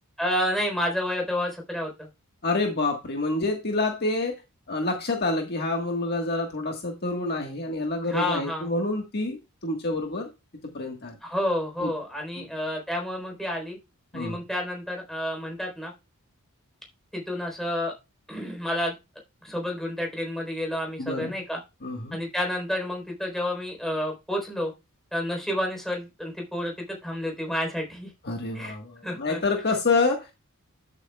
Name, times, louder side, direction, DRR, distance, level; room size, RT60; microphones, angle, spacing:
voice 1, 0.2-2.1 8.0-8.7 11.2-13.8 14.1-15.9 17.1-17.9 18.3-18.9 19.4-21.6 22.1-24.7 25.1-26.7 27.0-28.1 28.5-28.8 29.0-29.4, left 1 dB, ahead, 1 dB, 4.0 m, -30 dB
voice 2, 2.4-4.3 4.7-10.3 10.7-11.1 11.8-11.9 12.4-12.5 14.1-14.4 21.0-21.3 21.8-22.2 28.2-30.3, left 3 dB, 50° left, 2 dB, 1.6 m, -27 dB
13.0 x 8.2 x 2.4 m, 0.26 s
head